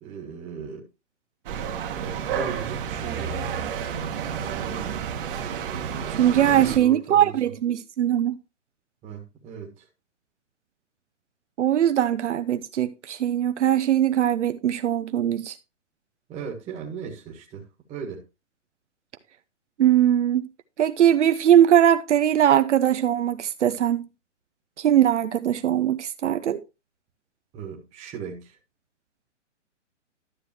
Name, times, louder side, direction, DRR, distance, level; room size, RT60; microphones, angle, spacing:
voice 1, 0.0-0.9 2.0-3.5 4.5-5.1 6.5-7.5 9.0-9.9 16.3-18.2 27.5-28.6, right 6 dB, 20° right, 1.5 m, -37 dB
sound 1, 1.5-6.8, right 7 dB, 45° right, 1.5 m, -30 dB
voice 2, 6.1-8.4 11.6-15.6 19.8-20.5 20.8-24.1 24.8-26.6, right 10 dB, 70° right, 0.8 m, -21 dB
12.5 x 6.5 x 2.9 m
hypercardioid pair, 150°, 37 cm